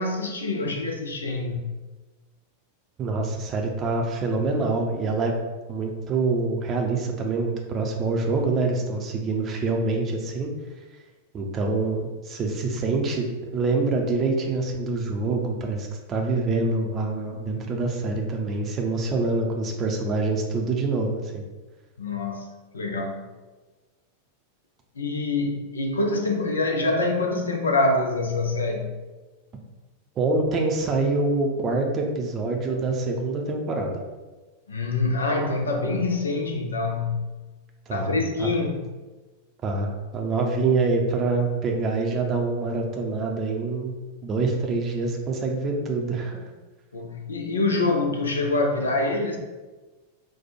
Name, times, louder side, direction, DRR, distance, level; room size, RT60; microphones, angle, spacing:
voice 1, 0.0-1.6 22.0-22.4 22.7-23.2 25.0-28.9 34.7-37.2 37.9-38.9 46.9-49.4, left 2 dB, 70° left, 3 dB, 0.6 m, -25 dB
voice 2, 3.0-5.4 5.7-10.5 11.3-21.4 30.2-34.0 37.9-38.5 39.6-43.9 44.2-46.4, right 3 dB, 30° right, 1 dB, 0.6 m, -25 dB
4.1 x 2.3 x 4.5 m, 1.2 s
figure-of-eight pair, 90°, 0 cm